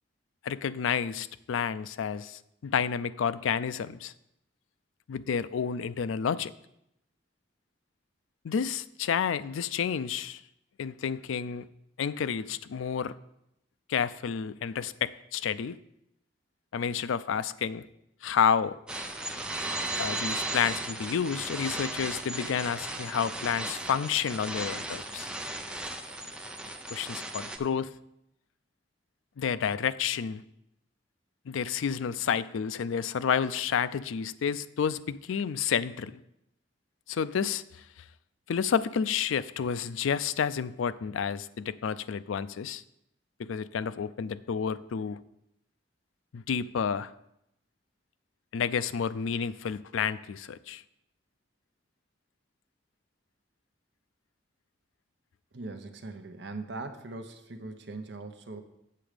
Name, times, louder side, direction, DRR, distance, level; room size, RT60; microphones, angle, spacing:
voice 1, 0.4-4.1 5.1-6.5 8.4-10.4 10.8-11.7 12.0-13.1 13.9-15.8 16.7-17.8 18.2-18.8 20.0-25.3 26.9-27.9 29.4-30.4 31.5-36.2 37.1-37.8 38.5-42.8 43.4-45.2 46.3-47.1 48.5-50.8, left 7 dB, 90° left, 15 dB, 0.4 m, -30 dB
sound 1, 18.9-27.6, right 2 dB, 5° right, 0.5 m, -36 dB
voice 2, 55.5-58.6, right 2 dB, 60° right, 7 dB, 0.8 m, -40 dB
7.7 x 7.1 x 5.0 m, 0.81 s
head